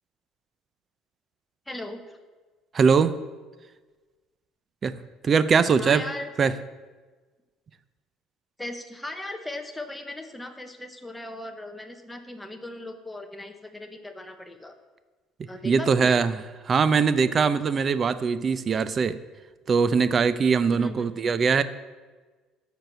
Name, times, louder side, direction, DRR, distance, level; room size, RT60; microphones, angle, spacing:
voice 1, 1.7-2.2 5.8-6.3 8.6-14.7 15.5-16.2 20.7-21.1, left 1 dB, 5° left, 5 dB, 0.8 m, -38 dB
voice 2, 2.7-3.2 4.8-5.0 5.2-6.0 6.4-6.5 15.6-16.3 16.7-19.2 19.7-21.6, right 5 dB, 25° right, 14 dB, 0.4 m, -21 dB
13.0 x 4.6 x 6.6 m, 1.3 s
cardioid pair, 160°, 0 cm